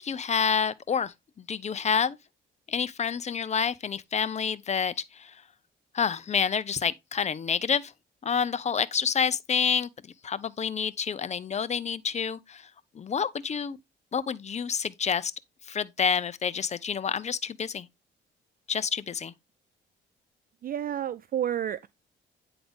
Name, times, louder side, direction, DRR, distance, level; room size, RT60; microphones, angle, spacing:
voice 1, 0.0-2.2 2.7-5.3 5.9-7.9 8.2-9.9 10.2-12.7 12.9-13.8 14.1-15.3 15.7-17.9 18.7-19.3, left 7 dB, 35° left, 0.6 m, -28 dB
voice 2, 20.6-21.9, right 10 dB, 45° right, 0.4 m, -30 dB
9.2 x 3.9 x 3.5 m
cardioid pair, 90°, 20 cm